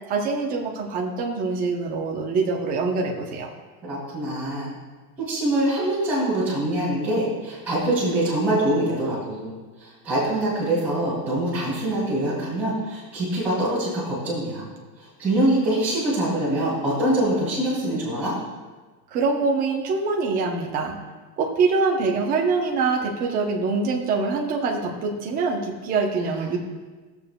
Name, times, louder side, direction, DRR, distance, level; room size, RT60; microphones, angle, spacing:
voice 1, 0.1-3.5 19.1-21.0 21.4-26.6, right 4 dB, 20° right, 0 dB, 0.7 m, -24 dB
voice 2, 3.8-4.7 5.3-9.5 9.8-14.6 15.0-18.3 26.3-26.6, right 1 dB, 5° right, -12 dB, 2.5 m, -24 dB
20.5 x 6.9 x 2.2 m, 1.3 s
supercardioid pair, 175°, 46 cm